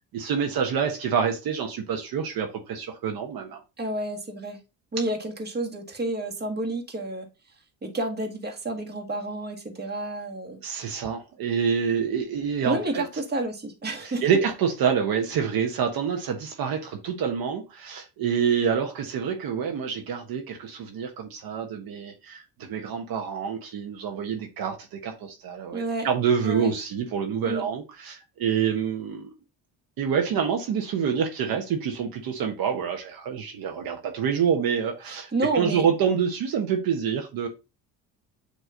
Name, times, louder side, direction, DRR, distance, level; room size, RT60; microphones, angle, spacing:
voice 1, 0.1-3.6 10.6-13.0 14.0-29.3 30.0-37.5, right 7 dB, 55° right, 1.2 m, -27 dB
voice 2, 3.8-4.6 4.9-7.2 7.8-10.6 12.6-14.2 25.7-26.1 26.4-26.7 27.5-27.7 35.3-35.8, right 2 dB, 25° right, 1.7 m, -30 dB
8.3 x 3.0 x 3.7 m
supercardioid pair, 90°, 43 cm